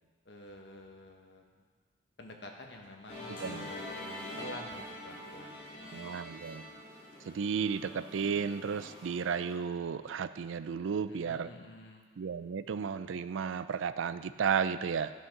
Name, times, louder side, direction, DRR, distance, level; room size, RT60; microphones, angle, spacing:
voice 1, 0.2-1.4 2.2-6.1 11.1-12.1, left 1 dB, 65° left, 2 dB, 1.2 m, -49 dB
Musical instrument, 3.1-9.5, left 1 dB, 40° left, 3.0 m, -45 dB
voice 2, 3.3-3.7 5.9-6.7 7.2-11.5 12.2-15.1, right 6 dB, 80° right, 14 dB, 0.4 m, -33 dB
12.0 x 5.8 x 5.8 m, 1.5 s
head